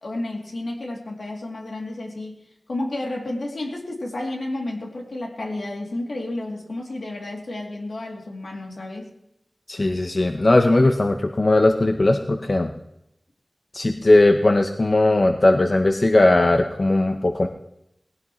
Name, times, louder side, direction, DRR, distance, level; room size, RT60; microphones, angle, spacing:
voice 1, 0.0-2.4 2.7-9.1, left 2 dB, 75° left, -1 dB, 2.8 m, -31 dB
voice 2, 9.7-12.7 13.7-17.5, left 2 dB, 45° left, 5 dB, 0.7 m, -18 dB
19.0 x 16.5 x 3.1 m, 0.82 s
wide cardioid pair, 75°, 0 cm